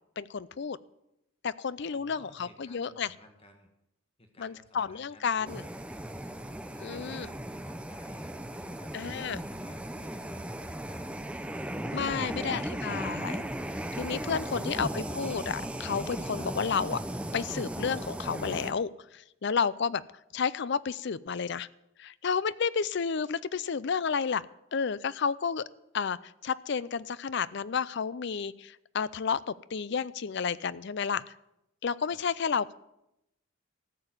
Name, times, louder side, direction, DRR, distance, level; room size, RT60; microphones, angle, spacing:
voice 1, 0.2-0.8 1.4-3.1 4.4-5.6 6.8-7.3 8.9-9.4 11.9-13.4 14.0-17.0 17.3-20.0 20.3-21.7 22.0-24.4 24.7-25.7 25.9-31.2 31.8-32.7, left 6 dB, 55° left, 19 dB, 0.5 m, -31 dB
voice 2, 1.8-3.7 4.2-5.8 6.2-8.9 9.3-11.2 14.0-14.8 16.4-16.5 32.0-32.2, left 1 dB, 25° left, 4 dB, 1.4 m, -55 dB
sound 1, 5.5-18.7, right 1 dB, 5° right, 0.6 m, -37 dB
14.0 x 6.9 x 9.5 m, 0.85 s
head